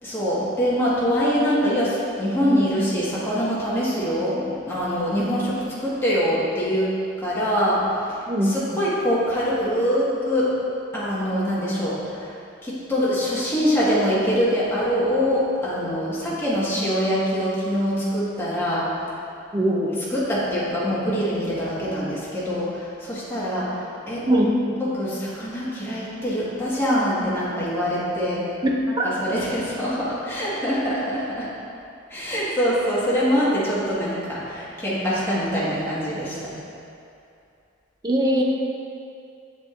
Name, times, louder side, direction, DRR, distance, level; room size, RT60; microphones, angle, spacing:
voice 1, 0.0-6.9 7.2-7.8 8.1-10.5 10.9-12.3 12.6-18.8 20.1-23.8 24.1-24.2 24.8-28.4 28.9-31.5 32.1-36.5, equal, 15° left, -9 dB, 1.6 m, -24 dB
voice 2, 19.5-20.0 24.3-24.5 29.0-29.1 38.0-38.4, right 1 dB, 20° right, -1 dB, 0.6 m, -20 dB
7.3 x 7.3 x 2.5 m, 2.5 s
head